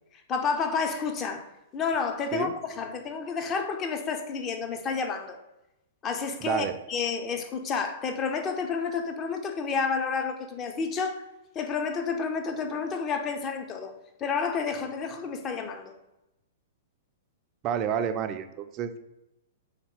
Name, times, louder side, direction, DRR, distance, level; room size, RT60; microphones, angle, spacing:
voice 1, 0.1-5.4 6.0-11.2 11.5-13.9 14.2-15.9, left 5 dB, 25° left, 0.5 m, -30 dB
voice 2, 6.4-6.8 17.6-19.0, right 8 dB, 30° right, 0.3 m, -29 dB
3.7 x 2.9 x 3.6 m
figure-of-eight pair, 105°, 0 cm